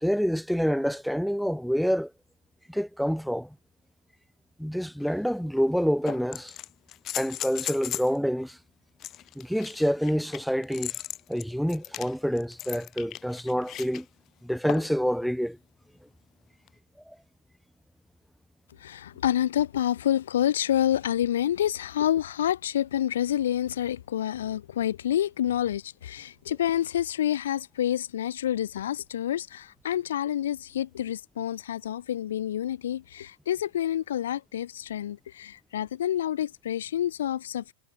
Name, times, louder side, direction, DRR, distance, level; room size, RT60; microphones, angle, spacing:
voice 1, 0.0-2.1 2.7-3.6 4.6-6.5 7.1-8.6 9.4-11.0 11.3-14.1 14.4-15.6 17.1-17.2, equal, ahead, 0.5 m, -27 dB
sound 1, 5.0-5.1 6.1-8.2 9.0-14.0 14.7-15.0 16.7-16.8, left 13 dB, 30° left, 0.9 m, -37 dB
voice 2, 18.8-37.7, left 11 dB, 85° left, 1.2 m, -28 dB
supercardioid pair, 145°, 0 cm